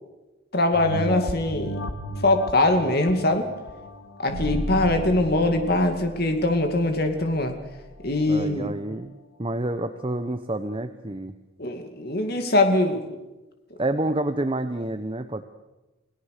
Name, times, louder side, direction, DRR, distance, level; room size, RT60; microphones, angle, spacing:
voice 1, 0.5-1.8 2.2-3.5 4.2-7.5 8.0-8.7 11.6-13.0, left 2 dB, 50° left, 6 dB, 2.4 m, -22 dB
sound 1, 0.7-5.7 6.2-6.3, equal, 85° left, 1.7 m, -34 dB
sound 2, 4.3-8.5, equal, 75° right, 3.4 m, -35 dB
voice 2, 8.3-11.3 13.8-15.4, right 1 dB, 25° right, 8 dB, 0.9 m, -28 dB
29.0 x 18.0 x 6.6 m, 1.1 s
head